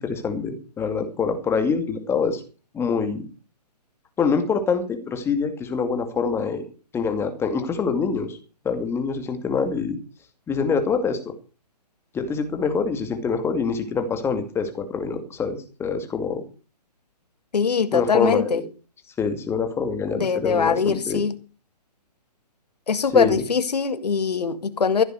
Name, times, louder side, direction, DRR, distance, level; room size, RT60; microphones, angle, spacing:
voice 1, 0.0-2.4 2.7-3.2 4.2-6.6 6.9-8.4 8.6-10.0 10.5-11.2 12.1-16.4 17.9-18.6 19.2-21.3 23.0-23.4, left 5 dB, 10° left, 7 dB, 2.5 m, -25 dB
voice 2, 17.5-18.6 20.2-21.3 22.9-25.0, left 6 dB, 70° left, 13 dB, 2.0 m, -22 dB
15.0 x 8.1 x 6.6 m, 0.35 s
hypercardioid pair, 135°, 21 cm